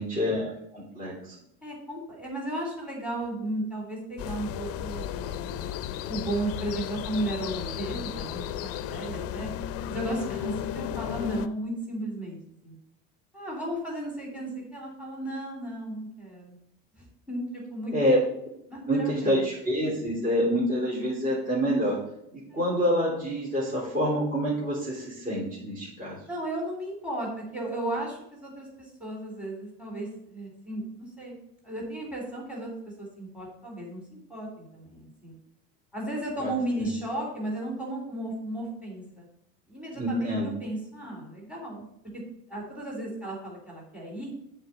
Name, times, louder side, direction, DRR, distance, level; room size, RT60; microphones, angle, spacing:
voice 1, 0.0-1.4 17.9-18.2 18.9-22.0 22.3-26.2 36.4-36.5 36.8-36.9 40.0-40.5, equal, 25° right, -6 dB, 3.2 m, -27 dB
voice 2, 1.6-5.6 6.1-9.5 9.9-12.4 12.6-12.8 13.3-16.6 16.9-18.1 18.7-19.5 22.5-22.6 26.3-31.4 31.6-32.7 33.0-35.4 35.9-39.2 39.7-41.9 42.5-44.3, right 1 dB, 5° right, -1 dB, 3.6 m, -34 dB
sound 1, 4.2-11.5, left 10 dB, 50° left, 0.6 m, -34 dB
7.8 x 4.6 x 6.7 m, 0.76 s
supercardioid pair, 110°, 30 cm